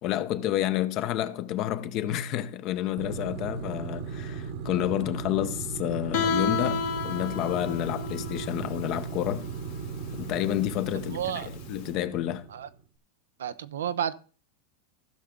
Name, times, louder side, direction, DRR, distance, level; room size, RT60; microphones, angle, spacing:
voice 1, 0.0-9.5 10.1-11.2 11.7-12.5, left 12 dB, 45° left, 0.8 m, -29 dB
sound 1, 3.0-12.8, right 5 dB, 60° right, 1.2 m, -37 dB
Guitar, 6.1-11.8, left 5 dB, 65° left, 1.9 m, -32 dB
voice 2, 10.9-11.5 12.5-12.7 13.4-14.1, right 9 dB, 90° right, 0.6 m, -31 dB
15.5 x 5.9 x 3.8 m
hypercardioid pair, 120°, 0 cm